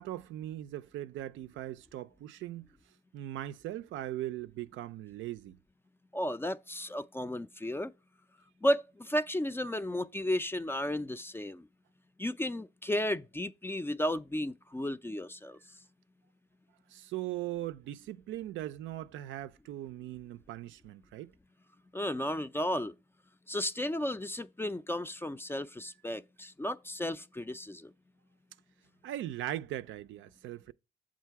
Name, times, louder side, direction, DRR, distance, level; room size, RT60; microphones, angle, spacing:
voice 1, 0.0-2.7 3.1-5.6 16.9-21.3 29.0-30.7, right 13 dB, 75° right, 0.4 m, -39 dB
voice 2, 6.1-7.9 8.6-11.6 12.2-15.6 21.9-22.9 23.5-27.9, left 1 dB, 10° left, 0.3 m, -33 dB
7.4 x 3.8 x 4.6 m
cardioid pair, 90°, 20 cm